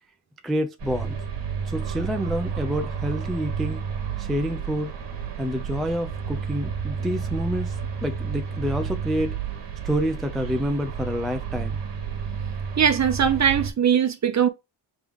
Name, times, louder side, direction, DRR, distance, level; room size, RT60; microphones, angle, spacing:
voice 1, 0.4-1.2 1.6-3.8 4.2-4.9 5.4-9.4 9.8-11.8, equal, ahead, 0.4 m, -28 dB
sound 1, 0.8-13.7, right 7 dB, 55° right, 1.4 m, -31 dB
voice 2, 12.8-14.5, right 8 dB, 35° right, 0.8 m, -20 dB
3.4 x 3.1 x 3.5 m
cardioid pair, 90°, 49 cm